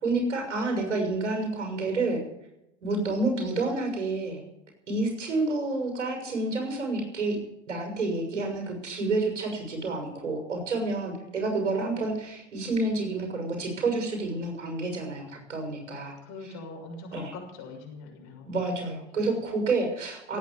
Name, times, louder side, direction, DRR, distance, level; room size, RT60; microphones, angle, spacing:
voice 1, 0.0-2.2 2.8-4.4 4.9-7.4 7.7-16.2 17.1-17.3 18.4-20.4, right 3 dB, 90° right, 3 dB, 6.5 m, -29 dB
voice 2, 16.2-18.5, left 2 dB, 55° left, 1 dB, 6.6 m, -43 dB
17.0 x 9.3 x 8.3 m, 0.87 s
hypercardioid pair, 100°, 36 cm